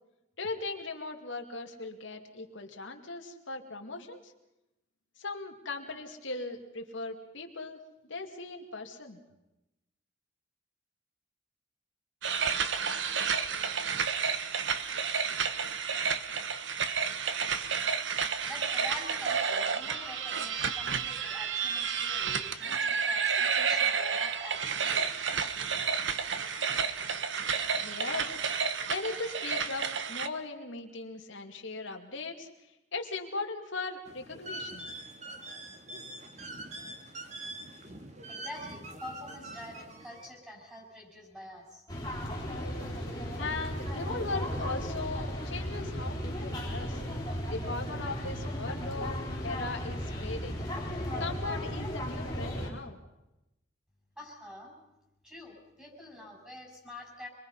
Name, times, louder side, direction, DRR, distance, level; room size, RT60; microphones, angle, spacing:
voice 1, 0.4-4.3 5.2-9.2 27.8-28.4 28.9-32.5 32.9-34.9 43.4-47.0 47.5-49.2 49.4-50.6 51.2-53.0, left 3 dB, 70° left, 3 dB, 2.4 m, -38 dB
sound 1, 12.2-30.3, right 6 dB, 65° right, 1.1 m, -31 dB
voice 2, 18.4-25.1 38.3-41.8 54.2-54.8 55.2-57.3, left 1 dB, 5° right, 0 dB, 6.3 m, -46 dB
sound 2, 34.1-40.3, right 1 dB, 35° right, 2.2 m, -44 dB
sound 3, 41.9-52.7, equal, 15° left, 3.8 m, -35 dB
26.5 x 21.5 x 5.6 m, 0.95 s
head